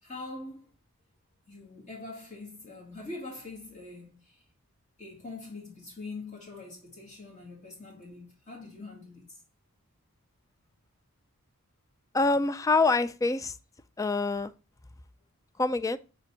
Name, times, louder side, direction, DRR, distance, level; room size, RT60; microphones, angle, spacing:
voice 1, 0.0-0.7 1.5-4.4 5.0-9.4, left 3 dB, 35° left, 1.9 m, -43 dB
voice 2, 12.1-13.6 14.0-14.5 15.6-16.0, left 3 dB, 15° left, 0.3 m, -25 dB
5.5 x 4.4 x 6.2 m
head